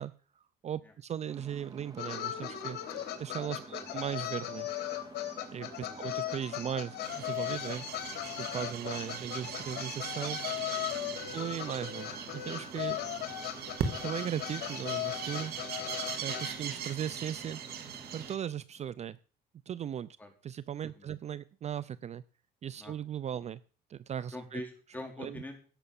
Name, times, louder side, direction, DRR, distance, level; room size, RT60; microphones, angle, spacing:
voice 1, 0.0-2.8 3.2-4.7 5.5-7.9 8.2-10.4 10.7-10.9 11.3-13.0 14.0-15.5 16.2-17.6 18.1-19.2 19.7-20.2 20.4-22.2 22.6-23.6 23.9-24.6 25.2-25.4, right 9 dB, 40° right, 18 dB, 0.5 m, -38 dB
sound 1, 1.2-18.3, right 3 dB, 25° right, 1.8 m, -51 dB
sound 2, 2.0-16.5, left 12 dB, 75° left, 3.3 m, -38 dB
voice 2, 5.8-6.1 10.9-11.3 20.2-20.3 20.9-21.2 22.8-22.9 24.3-25.7, left 1 dB, 10° left, 3 dB, 4.4 m, -44 dB
sound 3, 7.0-18.3, right 7 dB, 70° right, 2.7 m, -40 dB
17.5 x 6.9 x 7.1 m, 0.40 s
cardioid pair, 110°, 17 cm